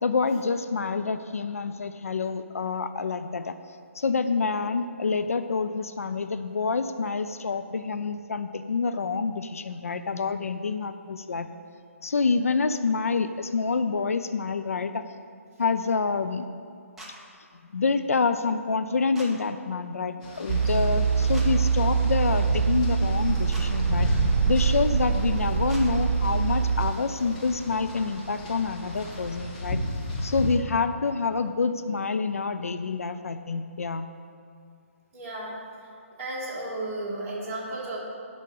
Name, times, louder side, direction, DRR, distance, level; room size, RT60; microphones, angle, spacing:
voice 1, 0.0-3.5 3.9-11.5 12.0-15.0 15.6-16.4 17.6-24.1 24.5-29.8 30.2-34.1, left 4 dB, 75° left, 10 dB, 0.5 m, -27 dB
sound 1, 17.0-17.1 19.1-19.3 21.3-21.5 23.5-23.7 25.7-25.8, right 1 dB, 5° right, 1.1 m, -42 dB
sound 2, 20.2-30.6, left 1 dB, 30° left, 1.8 m, -34 dB
sound 3, 20.5-26.9, right 6 dB, 45° right, 0.4 m, -24 dB
voice 2, 35.1-35.6 36.2-38.0, right 2 dB, 20° right, -7 dB, 2.8 m, -33 dB
11.0 x 5.1 x 6.6 m, 2.4 s
figure-of-eight pair, 150°, 8 cm